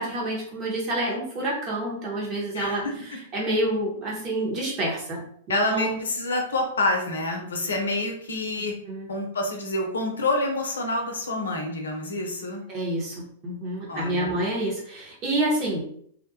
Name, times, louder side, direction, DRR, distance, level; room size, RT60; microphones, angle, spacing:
voice 1, 0.0-2.8 3.3-5.2 5.5-6.0 8.9-9.1 12.7-13.2 13.4-15.8, right 1 dB, 35° right, -3 dB, 1.1 m, -28 dB
voice 2, 2.5-2.9 5.5-8.7 9.1-12.6 13.9-14.4, left 2 dB, 75° left, 2 dB, 0.6 m, -27 dB
2.5 x 2.2 x 2.8 m, 0.64 s
figure-of-eight pair, 105°, 0 cm